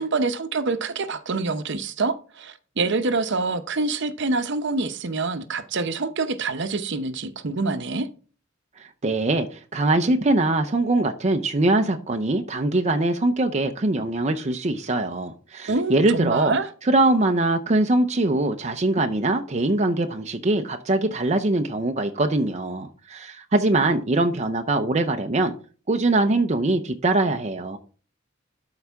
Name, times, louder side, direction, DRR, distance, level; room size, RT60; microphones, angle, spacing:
voice 1, 0.0-8.1 15.7-16.7, right 3 dB, 60° right, 0.8 m, -26 dB
voice 2, 8.8-16.5 16.9-25.5 25.9-27.8, right 2 dB, 35° right, 0.6 m, -22 dB
12.5 x 4.9 x 3.5 m
head